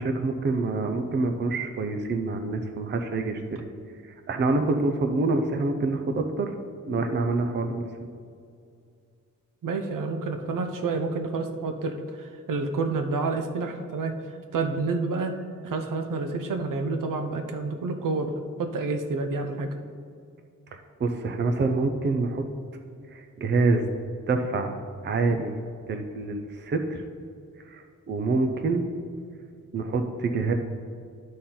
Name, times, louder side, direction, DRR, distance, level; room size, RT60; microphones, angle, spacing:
voice 1, 0.0-3.6 4.0-6.5 6.9-8.1 20.7-22.4 23.1-23.9 24.3-24.8 25.0-25.6 25.9-27.0 27.7-28.9 29.7-30.5, right 3 dB, 35° right, 6 dB, 0.5 m, -26 dB
voice 2, 9.6-14.1 14.5-15.4 15.6-18.3 18.6-19.7, right 3 dB, 75° right, 6 dB, 0.8 m, -29 dB
12.5 x 4.3 x 3.8 m, 2.3 s
wide cardioid pair, 160°, 32 cm